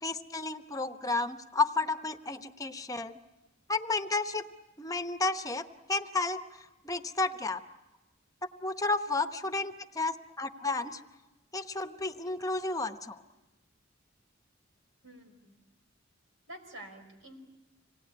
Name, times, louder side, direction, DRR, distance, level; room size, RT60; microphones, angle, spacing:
voice 1, 0.0-3.1 3.7-4.4 4.8-7.6 8.6-11.0 11.5-13.2, left 3 dB, 20° left, 7 dB, 0.8 m, -32 dB
voice 2, 15.0-15.6 16.5-17.4, right 1 dB, 80° right, 3 dB, 5.3 m, -48 dB
26.5 x 18.5 x 9.6 m, 1.1 s
head